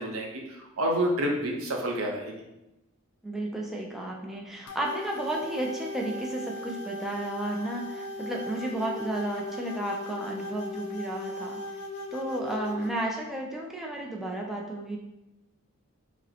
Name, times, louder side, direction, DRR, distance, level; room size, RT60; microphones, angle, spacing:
voice 1, 0.0-2.4, right 1 dB, 85° right, 1 dB, 0.7 m, -29 dB
voice 2, 3.2-11.6 12.1-15.0, right 1 dB, ahead, -2 dB, 0.4 m, -33 dB
sound 1, 4.7-13.1, left 2 dB, 80° left, 0.4 m, -38 dB
5.0 x 2.1 x 2.8 m, 0.94 s
head